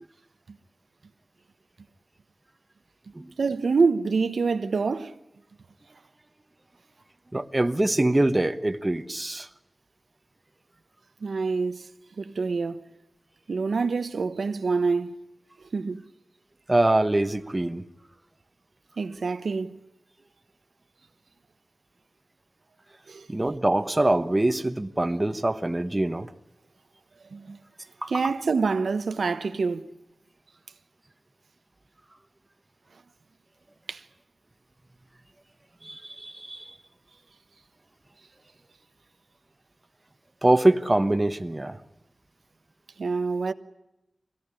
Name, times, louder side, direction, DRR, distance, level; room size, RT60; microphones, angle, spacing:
voice 1, 3.4-5.1 11.2-11.8 12.2-12.8 13.5-15.1 15.7-16.0 19.0-19.8 23.1-23.3 27.3-27.6 28.1-29.9 33.9-34.0 43.0-43.5, right 4 dB, 80° right, 1.1 m, -26 dB
voice 2, 7.3-9.5 16.7-17.8 23.3-26.3 28.0-28.1 35.8-36.6 40.4-41.8, right 1 dB, 20° right, 1.2 m, -24 dB
24.5 x 17.5 x 9.9 m
wide cardioid pair, 90°, 0 cm